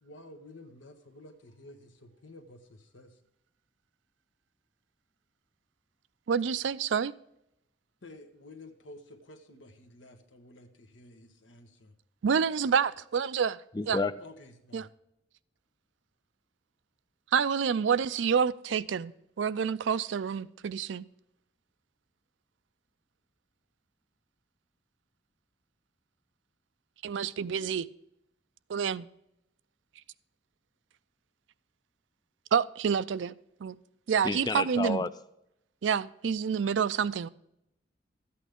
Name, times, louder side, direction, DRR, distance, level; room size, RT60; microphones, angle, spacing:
voice 1, 0.0-3.2 8.0-11.9 14.2-14.9, left 2 dB, 90° left, 1.3 m, -51 dB
voice 2, 6.3-7.1 12.2-13.6 13.9-14.0 14.7-14.9 17.3-19.1 19.4-21.0 27.0-27.9 28.7-29.1 32.5-33.3 33.6-33.8 34.1-35.0 35.8-37.3, right 6 dB, 75° right, 0.4 m, -28 dB
voice 3, 13.7-14.1 34.2-35.1, left 3 dB, 20° left, 0.4 m, -30 dB
13.0 x 8.5 x 3.6 m
head